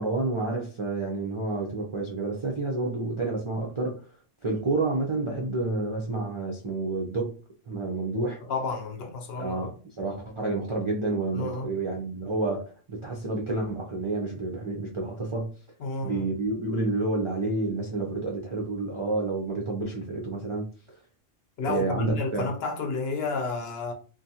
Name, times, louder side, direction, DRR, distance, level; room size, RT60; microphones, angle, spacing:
voice 1, 0.0-4.0 4.4-7.3 7.7-8.4 9.4-12.6 12.9-15.5 16.0-20.7 21.6-22.5, right 2 dB, 50° right, 0.3 m, -29 dB
voice 2, 8.4-9.7 11.3-11.7 15.8-16.3 21.6-23.9, left 4 dB, 65° left, 0.7 m, -31 dB
2.5 x 2.2 x 2.7 m
omnidirectional pair, 1.2 m